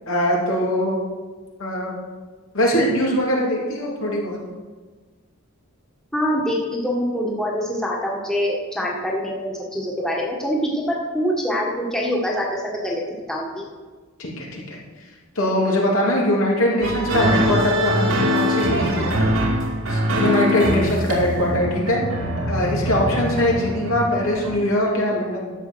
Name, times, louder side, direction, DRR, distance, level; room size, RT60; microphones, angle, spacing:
voice 1, 0.1-1.0 1.6-1.9 2.5-4.4 14.2-14.8 15.3-19.2 19.8-22.0 22.4-25.5, left 1 dB, 75° left, -3 dB, 3.2 m, -22 dB
voice 2, 6.1-13.0 13.3-13.6, equal, 5° left, -3 dB, 1.7 m, -24 dB
sound 1, 16.8-24.6, equal, 80° right, 2.5 m, -23 dB
12.5 x 7.8 x 6.3 m, 1.3 s
head